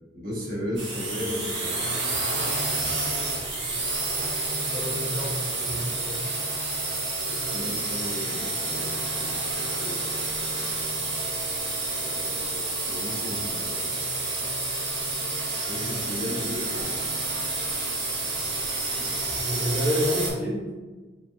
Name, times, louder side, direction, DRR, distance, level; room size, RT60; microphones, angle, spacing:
voice 1, 0.1-2.3 5.1-5.4 7.3-9.5 9.8-10.2 12.0-14.0 15.7-17.0, equal, 45° right, -4 dB, 1.1 m, -36 dB
sound 1, 0.8-20.3, right 2 dB, 65° right, 1.2 m, -29 dB
voice 2, 4.7-6.3 19.4-20.7, equal, 5° right, -6 dB, 0.5 m, -29 dB
4.8 x 3.4 x 2.5 m, 1.3 s
head